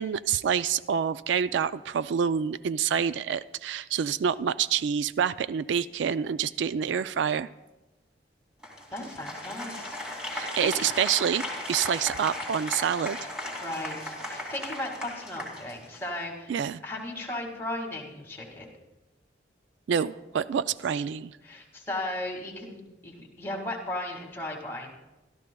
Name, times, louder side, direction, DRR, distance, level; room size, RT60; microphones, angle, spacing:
voice 1, 0.0-7.5 10.3-13.2 16.5-16.8 19.9-21.4, right 7 dB, 75° right, 15 dB, 0.3 m, -27 dB
Applause, 8.6-16.2, left 1 dB, 5° right, 2.4 m, -37 dB
voice 2, 8.9-10.0 10.3-10.7 13.6-16.5 16.8-18.7 21.4-24.9, left 1 dB, 15° left, 0 dB, 2.0 m, -36 dB
24.0 x 13.0 x 2.3 m, 1.0 s
head